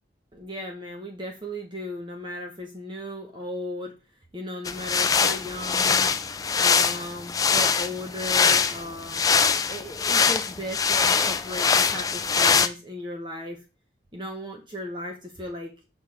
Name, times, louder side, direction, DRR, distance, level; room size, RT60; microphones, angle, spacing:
voice 1, 0.3-3.9 4.3-9.2 9.7-13.6 14.1-15.7, equal, 25° right, 2 dB, 1.1 m, -36 dB
sound 1, 4.6-12.7, left 6 dB, 20° left, 0.4 m, -23 dB
6.2 x 6.0 x 3.5 m, 0.28 s
head